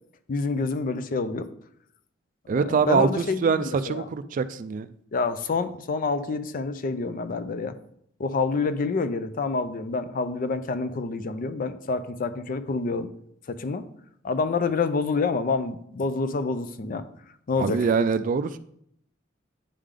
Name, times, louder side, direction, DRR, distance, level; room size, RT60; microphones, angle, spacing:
voice 1, 0.3-1.5 2.6-4.1 5.1-7.7 8.2-13.1 13.5-13.9 14.2-17.0 17.5-17.8, left 4 dB, 45° left, 11 dB, 0.4 m, -27 dB
voice 2, 2.5-4.9 17.6-18.6, right 5 dB, 40° right, 12 dB, 0.3 m, -24 dB
10.0 x 3.3 x 3.7 m, 0.71 s
head